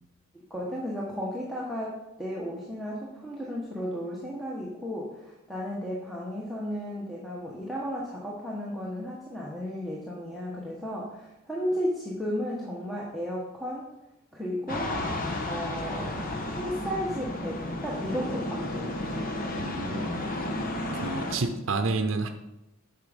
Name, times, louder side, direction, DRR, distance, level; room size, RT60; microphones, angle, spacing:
voice 1, 0.5-13.9 14.3-14.9 15.5-16.2 16.5-19.3, equal, ahead, -5 dB, 1.1 m, -34 dB
sound 1, 14.7-21.4, left 1 dB, 45° left, 1.1 m, -32 dB
voice 2, 19.5-20.3 20.9-22.3, right 3 dB, 70° right, 7 dB, 0.7 m, -30 dB
7.9 x 6.0 x 5.1 m, 0.95 s
head